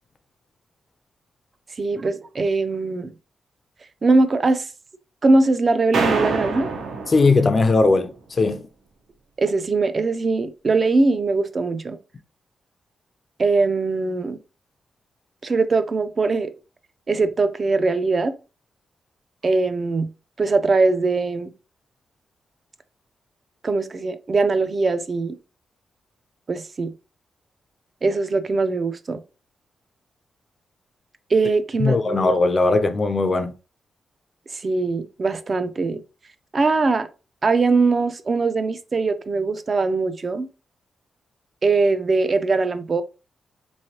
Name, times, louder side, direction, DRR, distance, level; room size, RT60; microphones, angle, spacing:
voice 1, 1.8-3.1 4.0-4.7 5.2-6.7 9.4-12.0 13.4-14.4 15.4-16.5 17.1-18.3 19.4-20.1 20.4-21.5 23.6-25.3 26.5-26.9 28.0-29.2 31.3-32.3 34.5-36.0 36.5-37.1 37.4-40.5 41.6-43.0, right 3 dB, 35° right, 0.4 m, -21 dB
sound 1, 5.9-7.9, right 4 dB, 85° right, 0.8 m, -26 dB
voice 2, 7.1-8.7 31.8-33.5, left 3 dB, 35° left, 0.4 m, -19 dB
3.5 x 3.1 x 2.8 m
wide cardioid pair, 120°, 0 cm